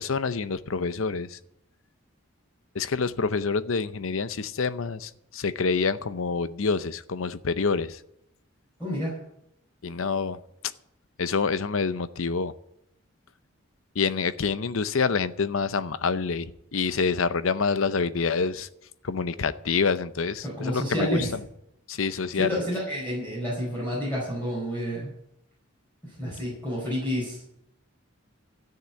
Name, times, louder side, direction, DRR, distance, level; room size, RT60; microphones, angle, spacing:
voice 1, 0.0-1.4 2.7-8.0 9.8-10.4 11.2-12.5 14.0-18.7 19.0-21.4 21.9-22.6, left 5 dB, 70° left, 14 dB, 0.7 m, -27 dB
voice 2, 8.8-9.1 20.4-21.3 22.1-25.1 26.2-27.4, equal, 10° left, -7 dB, 5.1 m, -29 dB
13.5 x 6.7 x 9.8 m, 0.79 s
head